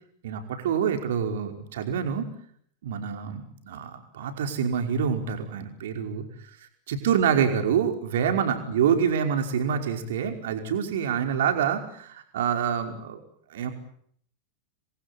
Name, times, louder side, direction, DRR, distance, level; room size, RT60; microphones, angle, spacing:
voice 1, 0.2-2.3 2.8-6.2 6.9-13.2 13.5-13.7, right 7 dB, 60° right, 5 dB, 5.2 m, -26 dB
29.5 x 23.0 x 8.6 m, 0.66 s
figure-of-eight pair, 90°, 0 cm